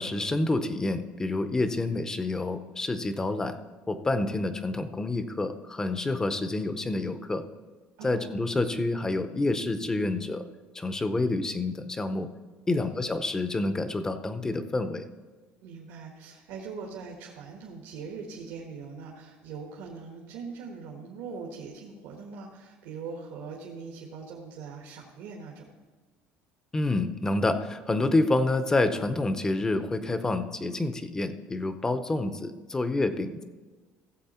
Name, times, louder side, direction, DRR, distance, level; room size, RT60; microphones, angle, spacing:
voice 1, 0.0-3.6 3.9-7.4 8.0-10.4 10.7-12.3 12.7-15.0 26.7-33.4, left 2 dB, 15° left, 10 dB, 0.6 m, -28 dB
voice 2, 8.0-8.4 12.7-13.1 15.6-25.7, right 5 dB, 80° right, -1 dB, 1.5 m, -41 dB
15.5 x 7.6 x 4.3 m, 1.3 s
cardioid pair, 155°, 5 cm